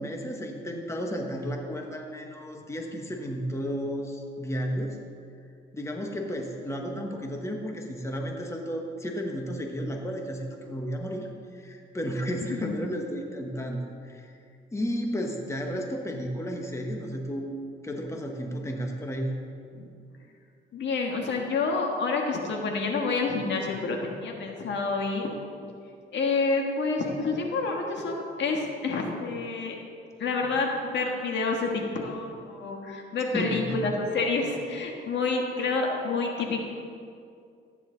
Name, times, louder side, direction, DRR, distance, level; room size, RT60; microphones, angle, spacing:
voice 1, 0.0-5.0 5.7-14.4 14.7-17.5 17.8-19.3 33.2-33.8, equal, 15° left, 2 dB, 1.3 m, -33 dB
voice 2, 20.7-25.3 26.1-29.8 30.2-36.6, left 3 dB, 65° left, 1 dB, 1.7 m, -28 dB
13.5 x 9.6 x 4.0 m, 2.3 s
cardioid pair, 90°, 20 cm